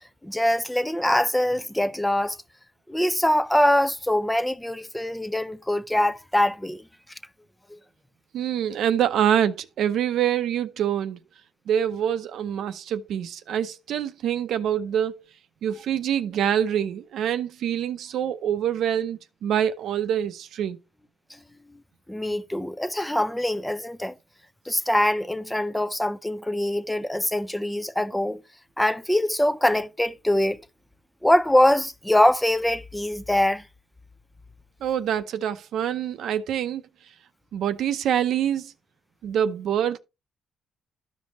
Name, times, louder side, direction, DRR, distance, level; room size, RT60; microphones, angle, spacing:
voice 1, 0.2-2.4 2.9-6.8 7.7-7.8 22.1-24.1 24.7-28.4 28.8-30.6 31.2-33.6, left 1 dB, 5° left, 0.6 m, -23 dB
voice 2, 8.3-11.2 11.7-15.2 15.6-20.8 34.8-36.8 37.5-38.7 39.2-40.0, right 9 dB, 75° right, 0.7 m, -25 dB
13.0 x 5.3 x 2.9 m
cardioid pair, 90°, 0 cm